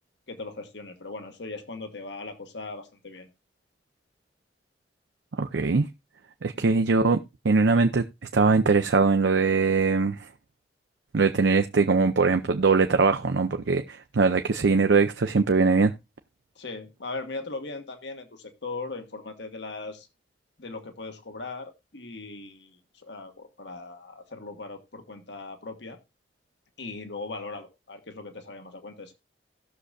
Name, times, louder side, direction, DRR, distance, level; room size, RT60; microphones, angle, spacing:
voice 1, 0.3-3.3 6.5-6.8 16.5-20.1 20.6-26.0 26.8-29.1, left 3 dB, 80° left, 1.4 m, -39 dB
voice 2, 5.4-5.9 6.4-7.2 7.4-8.0 8.3-10.3 11.1-15.9, right 4 dB, 85° right, 0.6 m, -21 dB
18.0 x 6.5 x 2.4 m
head